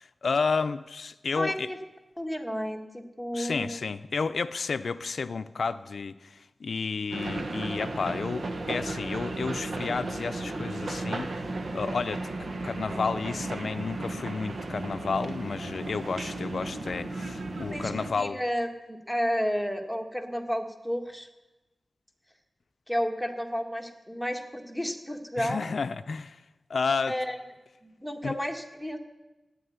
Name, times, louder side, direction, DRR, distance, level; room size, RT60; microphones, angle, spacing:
voice 1, 0.0-1.7 3.3-11.4 11.7-18.4 25.4-26.4 26.7-27.2 28.2-28.4, left 4 dB, 75° left, 11 dB, 0.5 m, -31 dB
voice 2, 1.4-1.8 2.2-3.8 17.7-21.3 22.9-25.6 27.1-27.3 27.8-29.0, equal, ahead, 4 dB, 1.8 m, -32 dB
sound 1, 7.1-18.1, right 2 dB, 75° right, 1.6 m, -34 dB
14.5 x 9.3 x 9.5 m, 1.1 s
wide cardioid pair, 80°, 0 cm